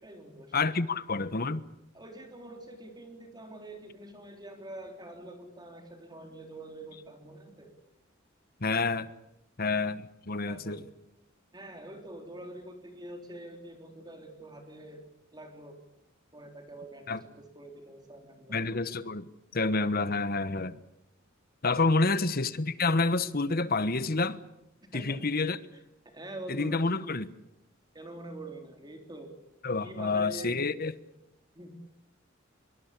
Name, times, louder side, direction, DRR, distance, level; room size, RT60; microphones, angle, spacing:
voice 1, 0.0-0.7 1.9-7.7 10.5-10.8 11.5-15.0 15.3-15.8 16.3-18.6 21.8-22.1 24.8-25.2 25.7-26.9 27.9-29.3 29.8-30.6 31.6-31.7, right 1 dB, 20° right, 3.5 m, -45 dB
voice 2, 0.5-1.6 8.6-9.1 9.6-10.8 17.1-17.2 18.5-19.3 19.5-20.8 21.6-24.4 24.9-25.6 26.5-27.3 29.6-30.9, left 3 dB, 50° left, 1.2 m, -28 dB
24.5 x 23.0 x 8.4 m
head